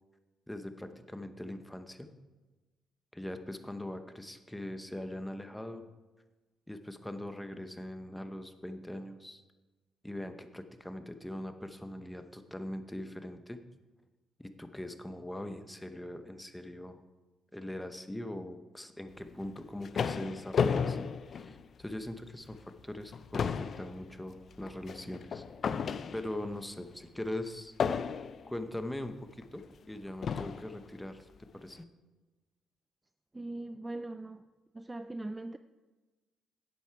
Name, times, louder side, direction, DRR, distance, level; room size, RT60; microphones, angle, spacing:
voice 1, 0.5-2.1 3.1-5.8 6.7-9.4 10.0-13.6 14.4-17.0 17.5-25.4 26.1-27.7 28.5-31.9, left 1 dB, 5° left, 0.9 m, -41 dB
sound 1, 19.4-22.1 22.5-22.7 23.0-26.5 27.8-28.5 29.4-29.5 30.2-30.7, left 6 dB, 50° left, 0.4 m, -33 dB
voice 2, 33.3-34.4 34.7-35.6, right 2 dB, 15° right, 0.3 m, -40 dB
10.5 x 8.2 x 4.6 m
cardioid pair, 90°, 0 cm